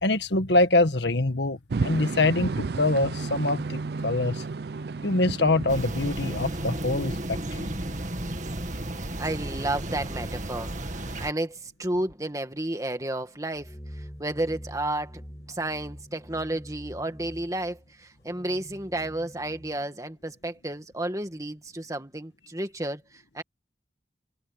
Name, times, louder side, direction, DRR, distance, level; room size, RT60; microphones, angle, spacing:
voice 1, 0.0-4.4 5.0-7.7, left 2 dB, 75° left, 1.6 m, -24 dB
sound 1, 1.7-7.4, right 4 dB, 60° right, 0.5 m, -32 dB
sound 2, 5.7-11.3, right 1 dB, 45° right, 2.1 m, -33 dB
voice 2, 9.2-15.2 15.5-23.4, right 1 dB, 20° right, 2.0 m, -32 dB
sound 3, 13.5-19.8, equal, 15° left, 7.6 m, -45 dB
head